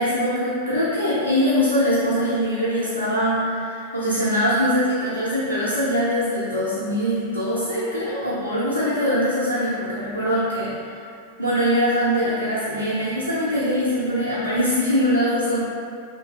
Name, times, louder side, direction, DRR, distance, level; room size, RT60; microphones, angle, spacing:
voice 1, 0.0-10.8 11.4-15.6, equal, 90° right, -11 dB, 0.6 m, -22 dB
3.1 x 2.6 x 2.4 m, 2.3 s
figure-of-eight pair, 90°, 0 cm